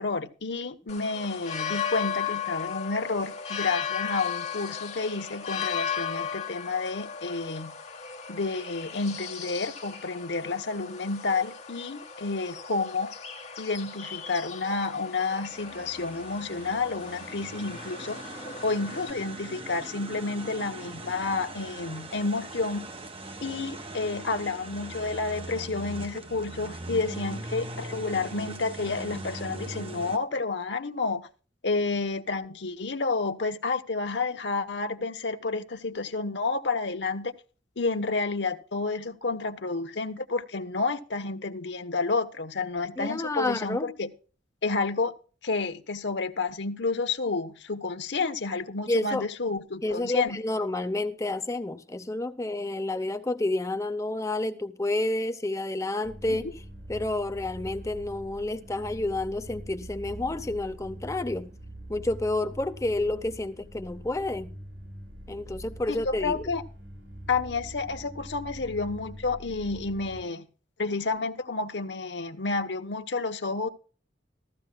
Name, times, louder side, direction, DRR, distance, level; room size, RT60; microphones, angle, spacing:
voice 1, 0.0-7.7 8.3-13.1 13.6-18.2 18.6-22.9 23.4-31.3 31.6-37.3 37.8-44.1 44.6-45.1 45.4-50.4 56.3-56.4 65.9-66.6 67.3-70.5 70.8-73.7, left 3 dB, 70° left, 1.1 m, -30 dB
sound 1, 0.9-19.1, left 7 dB, 35° left, 1.8 m, -36 dB
sound 2, 15.5-30.2, right 2 dB, 30° right, 1.3 m, -40 dB
voice 2, 43.0-43.9 48.9-49.2 49.8-56.5 56.9-61.5 61.9-64.5 65.3-66.5, left 2 dB, 15° left, 0.6 m, -30 dB
sound 3, 56.0-70.2, right 1 dB, 70° right, 7.5 m, -43 dB
15.0 x 14.5 x 2.2 m
head